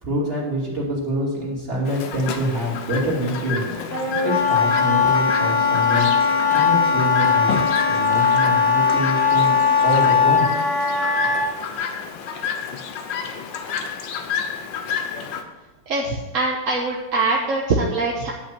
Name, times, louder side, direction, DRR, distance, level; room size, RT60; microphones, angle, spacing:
voice 1, 0.0-3.8 4.2-6.1 6.5-7.5 7.8-9.5 9.8-10.5, equal, 25° right, -5 dB, 2.9 m, -26 dB
Chirp tweet, 1.9-15.4, left 6 dB, 65° left, 1.5 m, -30 dB
Wind instrument woodwind instrument, 3.9-11.5, left 5 dB, 45° left, 2.1 m, -19 dB
voice 2, 15.9-18.3, right 3 dB, 45° right, -2 dB, 1.2 m, -23 dB
10.0 x 5.7 x 7.4 m, 1.2 s
omnidirectional pair, 2.3 m